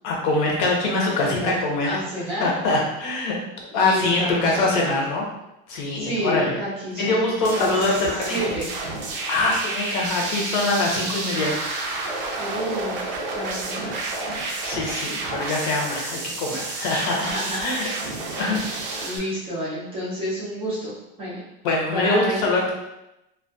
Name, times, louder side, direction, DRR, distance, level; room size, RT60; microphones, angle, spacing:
voice 1, 0.0-1.9 2.4-3.3 3.7-5.2 5.7-6.5 7.0-8.4 9.3-12.1 14.6-17.3 17.5-17.9 18.4-19.2 21.6-22.7, left 2 dB, 55° left, -1 dB, 0.7 m, -24 dB
voice 2, 1.0-1.6 1.8-2.5 3.7-5.0 5.9-7.9 8.2-8.7 11.9-13.0 13.2-13.9 17.2-17.6 18.2-18.7 19.0-20.9 21.2-21.4 21.9-22.4, equal, 20° right, -7 dB, 0.5 m, -30 dB
sound 1, 7.4-19.2, right 3 dB, 65° right, 0.6 m, -30 dB
2.2 x 2.2 x 2.5 m, 0.91 s
supercardioid pair, 165°, 30 cm